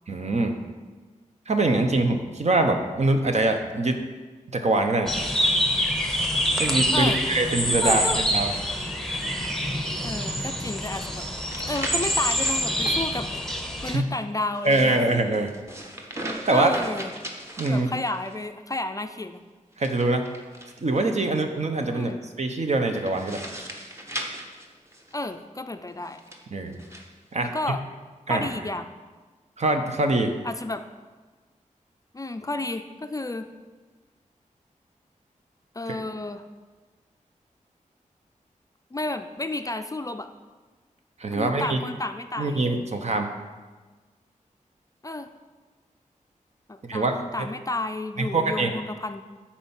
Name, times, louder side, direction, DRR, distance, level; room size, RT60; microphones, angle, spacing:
voice 1, 0.1-0.6 1.5-4.0 4.5-5.1 6.6-8.5 13.8-14.0 14.6-15.5 16.5-16.7 17.6-17.9 19.8-20.2 20.8-23.4 26.5-26.8 27.3-27.5 28.3-28.5 29.6-30.3 35.9-36.0 41.2-41.8 42.4-43.3 46.8-47.5 48.2-48.7, right 2 dB, 55° right, 5 dB, 1.0 m, -24 dB
sound 1, 5.1-14.0, equal, 5° left, 0.9 m, -26 dB
voice 2, 6.9-7.2 7.8-8.2 10.0-11.2 11.7-13.3 13.8-15.0 16.5-17.1 17.7-19.4 21.9-22.2 25.1-26.2 27.4-27.8 28.3-28.9 30.4-30.8 32.1-33.5 35.7-36.4 38.9-40.3 41.4-42.6 45.0-45.3 46.7-49.2, left 2 dB, 25° left, 8 dB, 0.4 m, -31 dB
sound 2, 11.0-13.0 14.5-18.4 19.7-21.0 22.9-25.3 26.0-27.1, right 1 dB, 20° right, 1.2 m, -38 dB
10.0 x 4.4 x 7.3 m, 1.3 s
wide cardioid pair, 110°, 14 cm